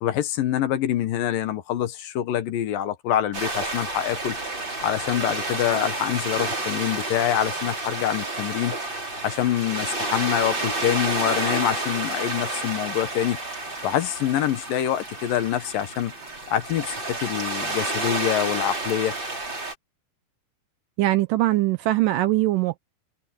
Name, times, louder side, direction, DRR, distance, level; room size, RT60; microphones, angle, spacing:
voice 1, 0.0-4.4 4.8-8.8 9.2-13.4 13.8-16.1 16.5-19.1, left 11 dB, 70° left, 2.7 m, -25 dB
sound 1, 3.3-19.7, right 2 dB, 30° right, 7.4 m, -30 dB
voice 2, 21.0-22.8, right 16 dB, 75° right, 2.1 m, -21 dB
omnidirectional pair, 4.5 m